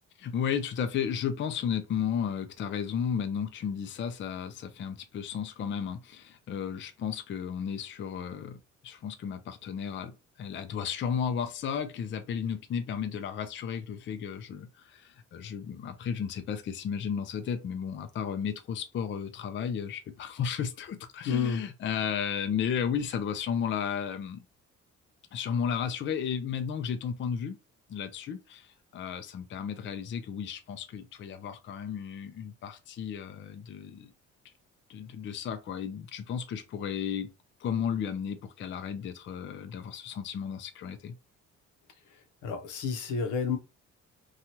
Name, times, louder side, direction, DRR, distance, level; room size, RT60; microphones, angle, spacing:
voice 1, 0.2-24.4 25.3-27.6 27.9-34.1 34.9-37.3 37.6-41.1, left 7 dB, 40° left, 0.4 m, -33 dB
voice 2, 21.2-21.6 42.4-43.6, left 6 dB, 80° left, 0.7 m, -30 dB
2.7 x 2.3 x 2.9 m
cardioid pair, 90°, 30 cm